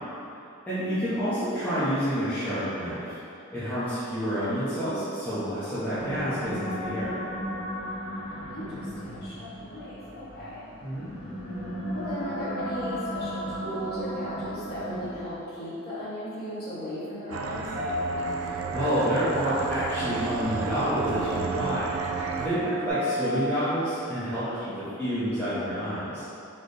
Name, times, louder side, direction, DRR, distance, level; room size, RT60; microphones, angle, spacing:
voice 1, 0.6-3.2 3.5-7.2 10.8-11.1 18.4-24.4 25.0-26.2, equal, 10° left, -15 dB, 0.8 m, -29 dB
sound 1, 5.7-15.5, equal, 75° left, 1.1 m, -35 dB
voice 2, 8.3-10.6 11.9-17.7 24.5-25.0, equal, 50° left, -11 dB, 1.4 m, -37 dB
sound 2, 17.3-22.5, right 3 dB, 70° right, 0.3 m, -33 dB
sound 3, 17.8-22.9, right 5 dB, 20° right, 1.1 m, -35 dB
4.2 x 3.0 x 3.2 m, 2.8 s
head